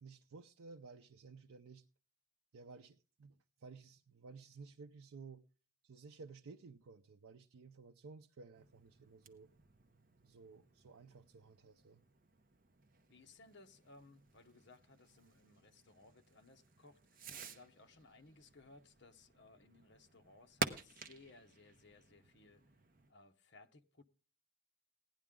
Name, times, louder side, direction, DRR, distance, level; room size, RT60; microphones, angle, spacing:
voice 1, 0.0-1.8 2.5-5.4 5.8-9.5 10.2-12.0, right 4 dB, 85° right, 0.5 m, -55 dB
Fireworks, 8.5-23.1, right 4 dB, 40° right, 0.8 m, -50 dB
voice 2, 13.1-22.6 23.1-24.0, left 3 dB, 55° left, 0.9 m, -62 dB
16.5 x 10.5 x 3.7 m
head